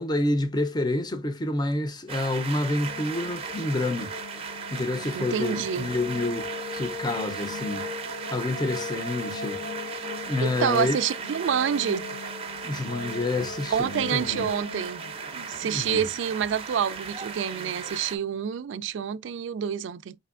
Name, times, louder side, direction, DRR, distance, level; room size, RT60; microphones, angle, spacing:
voice 1, 0.0-4.1 4.7-7.9 8.3-9.6 10.3-11.0 12.6-14.4 15.6-16.1, left 2 dB, 25° left, 0.6 m, -28 dB
sound 1, 2.1-18.2, right 6 dB, 35° right, 0.5 m, -37 dB
sound 2, 2.4-17.2, left 3 dB, 90° left, 2.3 m, -39 dB
voice 2, 5.1-5.9 10.4-12.1 13.7-15.0 15.3-20.2, right 8 dB, 85° right, 0.3 m, -28 dB
5.2 x 3.3 x 2.4 m
head